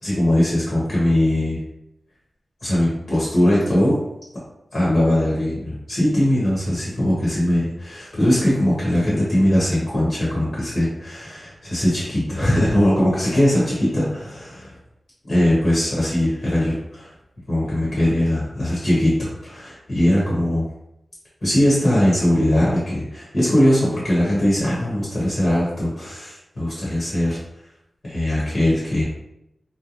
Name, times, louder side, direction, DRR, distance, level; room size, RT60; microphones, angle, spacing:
voice 1, 0.0-1.6 2.6-4.0 4.7-14.7 15.3-17.1 17.5-20.7 21.4-27.4 28.0-29.0, left 1 dB, 55° left, -7 dB, 1.0 m, -20 dB
2.9 x 2.2 x 2.5 m, 0.85 s
wide cardioid pair, 115°, 0 cm